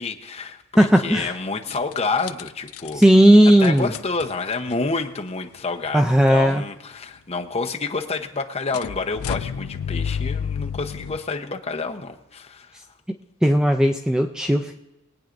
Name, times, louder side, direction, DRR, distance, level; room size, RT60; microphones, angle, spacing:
voice 1, 0.0-3.0 3.6-12.8, left 3 dB, 30° left, 3 dB, 0.8 m, -29 dB
voice 2, 0.8-1.3 2.9-3.9 5.9-6.6 13.4-14.8, equal, 5° right, 4 dB, 0.4 m, -16 dB
sound 1, 1.0-1.3 1.7-3.1 3.6-4.8 5.6-5.7 5.9-6.0 8.7-11.2, left 7 dB, 75° left, 0.4 m, -30 dB
23.0 x 9.1 x 2.6 m, 1.0 s
head